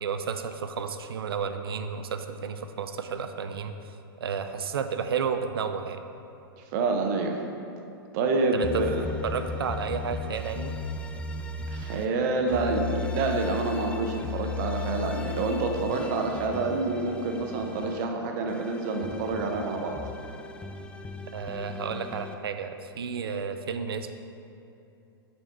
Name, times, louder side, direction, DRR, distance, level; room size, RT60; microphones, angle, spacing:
voice 1, 0.0-3.7 4.2-6.1 8.5-8.8 9.2-10.8 21.3-24.2, right 6 dB, 70° right, 8 dB, 0.5 m, -32 dB
voice 2, 6.6-7.4 8.1-9.0 11.7-20.0, right 3 dB, 45° right, 3 dB, 0.9 m, -27 dB
sound 1, 8.6-12.1 12.5-18.0 18.5-22.3, left 4 dB, 10° left, 0.3 m, -36 dB
7.6 x 4.3 x 4.6 m, 2.8 s
figure-of-eight pair, 105°, 13 cm